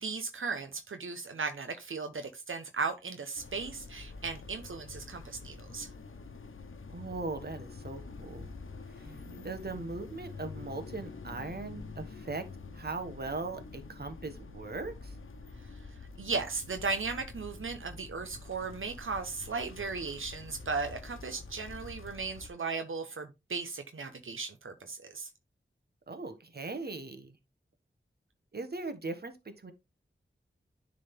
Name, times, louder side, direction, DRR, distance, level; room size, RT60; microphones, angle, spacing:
voice 1, 0.0-5.9 9.1-9.5 15.9-25.3, right 4 dB, 85° right, 0.9 m, -36 dB
sound 1, 3.4-22.5, left 4 dB, 85° left, 0.9 m, -47 dB
voice 2, 6.9-8.5 9.0-9.1 9.4-12.5 12.7-15.1 26.1-27.3 28.5-29.7, right 3 dB, 50° right, 1.3 m, -39 dB
10.0 x 3.9 x 3.6 m
wide cardioid pair, 70°, 20 cm